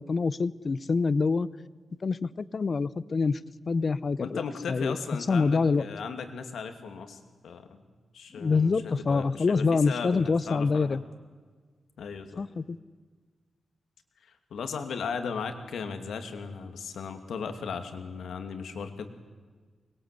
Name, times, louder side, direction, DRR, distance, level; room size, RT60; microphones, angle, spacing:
voice 1, 0.0-1.5 2.0-3.4 3.7-5.0 5.3-5.8 8.4-11.0 12.4-12.8, left 4 dB, 35° left, 18 dB, 0.7 m, -26 dB
voice 2, 4.2-7.8 8.1-11.0 12.0-12.4 14.2-19.1, left 6 dB, 85° left, 7 dB, 2.5 m, -37 dB
24.5 x 21.5 x 8.4 m, 1.5 s
wide cardioid pair, 165°, 0 cm